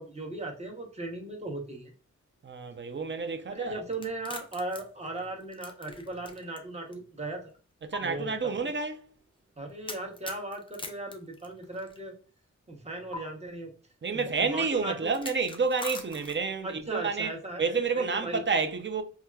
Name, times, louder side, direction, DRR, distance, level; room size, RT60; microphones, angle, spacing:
voice 1, 0.0-1.9 3.5-7.5 8.0-8.3 9.6-12.1 12.7-13.7 14.1-15.1 16.6-18.4, right 2 dB, 20° right, 0.9 m, -37 dB
voice 2, 2.4-3.8 7.8-9.1 14.0-17.3 17.6-19.0, right 4 dB, 40° right, 0.5 m, -29 dB
sound 1, 3.9-6.6 6.9-7.0 7.9-8.0 9.9-12.0 13.1-13.2 15.1-16.6, left 2 dB, 15° left, 0.5 m, -41 dB
4.2 x 2.4 x 2.3 m
wide cardioid pair, 120°, 30 cm